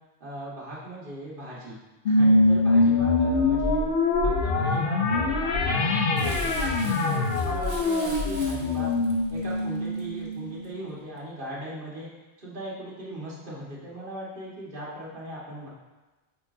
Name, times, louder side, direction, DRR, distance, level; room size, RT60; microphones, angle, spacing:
voice 1, 0.2-1.8 2.1-3.8 4.2-8.9 9.3-12.1 12.4-15.7, right 1 dB, 45° right, -7 dB, 1.9 m, -39 dB
sound 1, 2.0-10.8, left 2 dB, 60° left, 0.9 m, -24 dB
Crumpling crinkling, 6.2-10.7 11.2-11.3, right 2 dB, 80° right, 1.4 m, -44 dB
8.2 x 4.5 x 2.8 m, 1.1 s
omnidirectional pair, 1.2 m